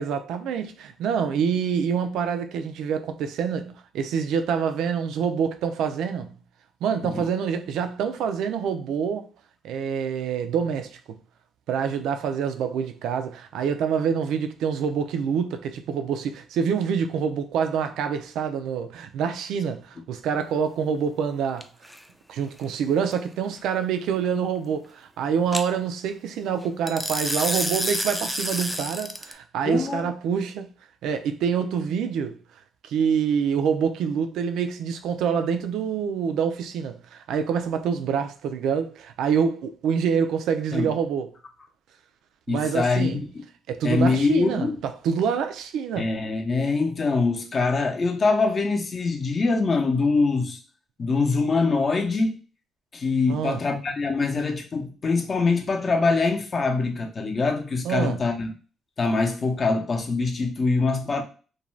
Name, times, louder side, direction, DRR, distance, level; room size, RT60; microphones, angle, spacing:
voice 1, 0.0-6.4 6.8-9.3 9.6-11.2 11.7-21.7 22.3-30.7 31.0-32.4 32.8-41.3 42.5-43.2 43.7-46.1 53.3-53.6 57.8-58.2, right 7 dB, 85° right, 0.3 m, -26 dB
sound 1, 21.6-22.0 25.5-25.6 26.9-29.3, equal, ahead, 0.3 m, -28 dB
voice 2, 29.6-30.0 40.7-40.9 42.5-43.4 43.8-44.8 46.0-50.6 51.0-52.4 52.9-58.5 59.0-61.2, left 3 dB, 40° left, 0.6 m, -24 dB
2.5 x 2.2 x 3.1 m
cardioid pair, 90°, 0 cm